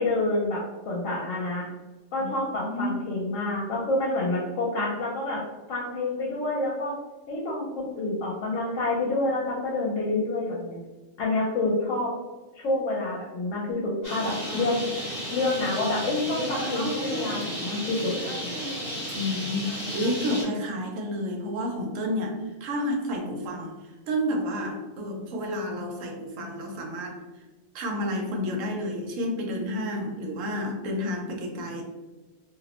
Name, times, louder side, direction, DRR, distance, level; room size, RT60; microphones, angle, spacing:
voice 1, 0.0-1.6 2.1-5.4 5.7-6.9 7.3-10.8 11.2-12.1 12.5-14.8 15.3-18.1 18.4-18.5, left 2 dB, 80° left, -3 dB, 0.9 m, -28 dB
voice 2, 2.5-3.0 19.1-23.7 24.0-27.2 27.7-31.8, left 1 dB, 80° right, 1 dB, 1.0 m, -30 dB
Bird, 14.0-20.4, equal, 30° right, 0.9 m, -33 dB
2.5 x 2.0 x 2.8 m, 1.2 s
omnidirectional pair, 1.3 m